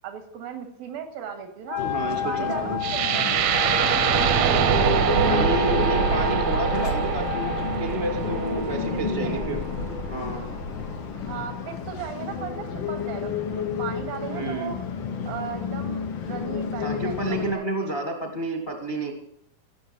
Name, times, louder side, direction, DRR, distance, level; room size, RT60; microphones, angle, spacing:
voice 1, 0.0-1.8 2.2-3.3 5.1-5.5 8.9-9.5 11.3-14.8 15.3-18.0, right 8 dB, 90° right, 6 dB, 3.5 m, -37 dB
Wind instrument woodwind instrument, 1.7-7.8, left 12 dB, 65° left, 2.4 m, -31 dB
sound 1, 1.8-17.5, left 6 dB, 85° left, 1.0 m, -31 dB
voice 2, 1.8-2.8 5.2-9.6 10.1-10.4 14.3-14.7 16.8-19.1, right 1 dB, 30° left, 3 dB, 0.9 m, -30 dB
sound 2, 2.8-10.8, right 9 dB, 70° right, 1.7 m, -24 dB
16.5 x 6.7 x 6.9 m, 0.72 s
omnidirectional pair, 4.0 m